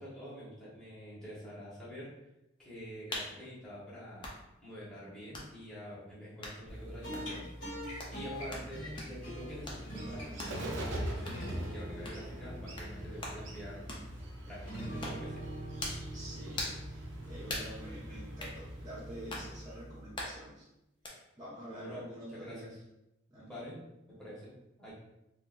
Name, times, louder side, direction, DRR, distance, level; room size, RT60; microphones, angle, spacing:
voice 1, 0.0-2.1 2.6-4.3 4.6-7.5 8.1-13.8 14.5-15.4 21.7-22.8 23.4-23.8 24.1-24.5 24.8-24.9, equal, 5° left, -10 dB, 1.1 m, -46 dB
sound 1, 3.1-3.3 4.2-4.4 5.3-5.5 6.4-6.6 7.1-7.3 8.0-8.2 8.5-8.7 9.0-9.2 9.7-9.8 10.4-10.6 11.3-11.4 12.0-12.2 12.8-12.9 13.2-13.4 13.9-14.1 15.0-15.2 15.8-16.1 16.6-16.8 17.5-17.7 18.4-18.6 19.3-19.5 20.2-20.4 21.1-21.2, left 1 dB, 25° left, 0.5 m, -40 dB
sound 2, 6.7-20.2, equal, 70° left, 1.5 m, -44 dB
Bird, 8.4-19.9, right 1 dB, 75° right, 0.6 m, -45 dB
voice 2, 16.1-20.7 21.4-22.7 23.3-23.5, right 1 dB, 20° right, -8 dB, 0.7 m, -47 dB
3.8 x 2.3 x 2.5 m, 0.88 s
head